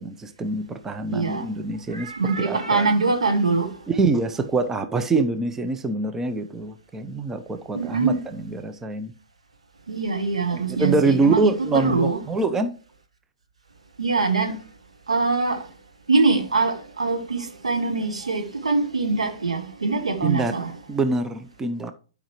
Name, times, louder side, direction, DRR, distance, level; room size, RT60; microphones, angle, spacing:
voice 1, 0.0-2.1 2.4-2.9 3.9-9.1 10.5-12.7 20.2-20.5 20.9-21.9, right 3 dB, 10° right, 0.6 m, -25 dB
voice 2, 1.1-1.5 1.9-3.7 7.7-8.2 9.9-12.2 14.0-14.6 15.1-15.7 16.1-20.7, right 3 dB, 80° right, 1.5 m, -23 dB
11.5 x 5.0 x 3.0 m
figure-of-eight pair, 120°, 3 cm